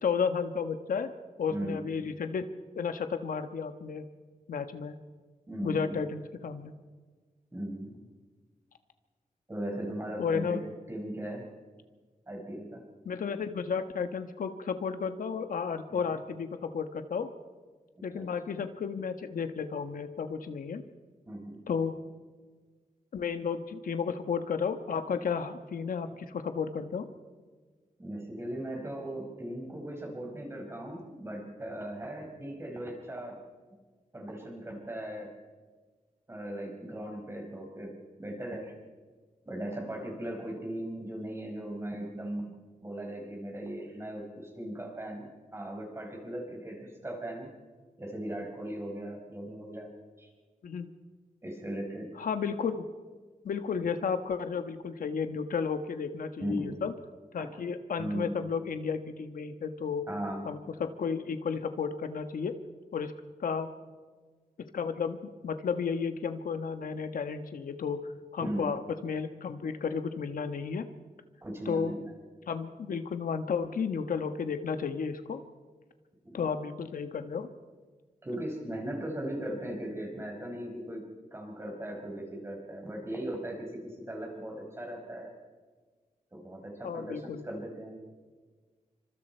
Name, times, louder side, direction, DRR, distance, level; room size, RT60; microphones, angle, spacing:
voice 1, 0.0-1.1 1.4-2.5 2.7-4.0 4.5-4.9 5.6-6.7 10.2-10.6 13.0-17.3 18.0-20.8 21.7-22.0 23.1-27.1 50.6-50.9 52.2-52.8 53.4-56.9 57.3-60.0 60.4-62.5 62.9-63.1 63.4-63.7 64.7-65.2 65.4-68.0 68.3-70.8 71.7-71.9 72.5-75.4 76.3-77.5 86.8-87.4, left 6 dB, 85° left, 8 dB, 1.3 m, -32 dB
voice 2, 1.5-1.8 5.5-6.0 7.5-8.0 9.5-11.5 12.3-12.8 15.9-16.1 18.1-18.6 21.3-21.6 28.0-33.4 34.1-35.3 36.3-38.7 39.4-42.6 42.8-47.5 48.0-49.9 50.2-50.3 51.4-52.1 56.4-56.8 57.4-57.5 58.0-58.4 60.1-60.5 68.4-68.7 71.4-72.1 76.2-76.4 78.2-81.0 81.3-85.3 86.3-88.0, right 1 dB, 20° right, 1 dB, 4.8 m, -38 dB
28.0 x 25.5 x 4.5 m, 1.4 s
wide cardioid pair, 150°, 14 cm